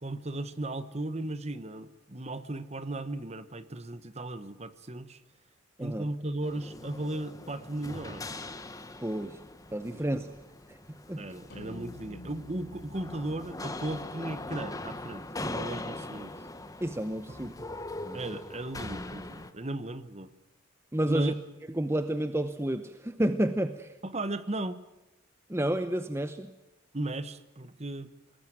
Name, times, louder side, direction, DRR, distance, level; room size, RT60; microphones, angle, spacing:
voice 1, 0.0-5.2 5.8-8.3 9.9-10.1 11.2-16.3 17.4-17.7 18.1-20.3 21.0-21.3 24.0-24.8 26.9-28.1, right 2 dB, 30° right, 13 dB, 1.1 m, -36 dB
sound 1, 6.4-19.5, left 2 dB, 15° left, 1.2 m, -41 dB
voice 2, 9.0-9.4 9.7-10.3 10.7-11.3 16.8-17.5 18.0-18.2 20.9-21.3 21.8-23.9 25.5-26.5, right 1 dB, 10° right, 10 dB, 0.8 m, -30 dB
sound 2, 11.5-16.0, left 1 dB, 50° left, 3.7 m, -51 dB
22.0 x 19.5 x 9.2 m, 0.95 s
head